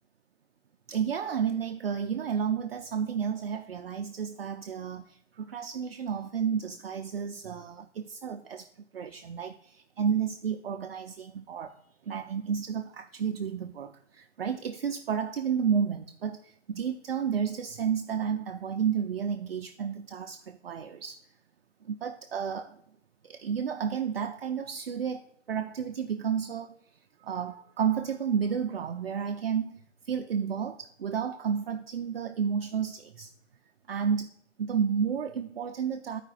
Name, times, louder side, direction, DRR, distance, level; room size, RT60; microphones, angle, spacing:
voice 1, 0.9-21.2 21.8-22.8 23.2-26.8 27.2-29.8 30.0-33.3 33.9-34.3 34.6-36.2, right 7 dB, 55° right, 0.5 m, -31 dB
13.5 x 4.9 x 2.5 m
hypercardioid pair, 170°, 36 cm